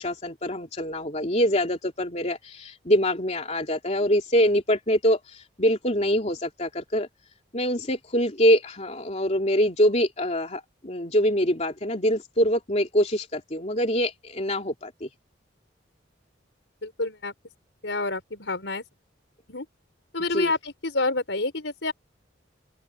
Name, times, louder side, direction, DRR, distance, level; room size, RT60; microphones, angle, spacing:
voice 1, 0.0-7.1 7.5-15.1 20.3-20.5, equal, 35° left, 3.2 m, -24 dB
voice 2, 16.8-17.3 17.8-18.8 19.5-19.6 20.1-21.9, left 3 dB, 75° left, 4.9 m, -28 dB
open air
head